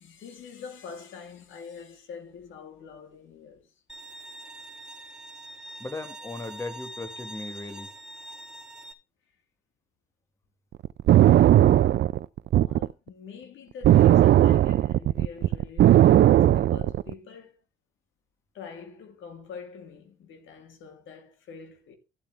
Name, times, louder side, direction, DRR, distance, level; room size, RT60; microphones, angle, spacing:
voice 1, 0.0-3.7 12.6-17.6 18.5-22.0, left 6 dB, 80° left, 3.1 m, -45 dB
Bowed string instrument, 3.9-8.9, right 1 dB, 5° right, 1.8 m, -43 dB
voice 2, 5.8-7.9, left 2 dB, 15° left, 1.5 m, -37 dB
sound 1, 10.9-12.9 13.8-17.1, right 12 dB, 60° right, 0.5 m, -17 dB
13.5 x 8.4 x 3.4 m
cardioid pair, 90°, 20 cm